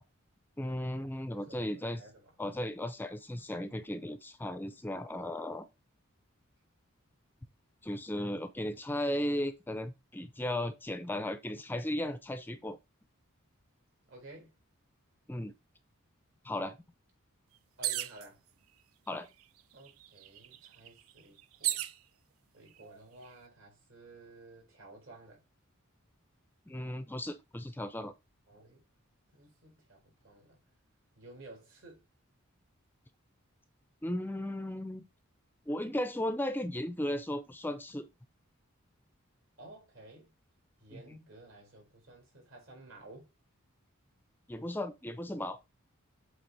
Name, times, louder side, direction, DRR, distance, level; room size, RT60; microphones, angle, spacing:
voice 1, 0.6-2.0 2.4-5.7 7.8-12.8 15.3-15.5 16.4-16.8 19.1-19.3 26.7-28.1 34.0-35.0 35.7-38.1 40.9-41.0 44.5-45.6, left 1 dB, 10° left, 0.4 m, -36 dB
voice 2, 1.3-2.2 14.1-14.5 17.8-18.4 19.7-21.8 22.5-25.4 28.5-28.8 29.3-30.6 31.2-32.0 39.6-40.3 40.8-43.3, right 2 dB, 65° right, 4.3 m, -53 dB
sound 1, 17.8-18.3 19.2-19.3 19.6-22.0 22.8-23.3, right 14 dB, 80° right, 0.5 m, -35 dB
7.7 x 3.6 x 4.7 m
head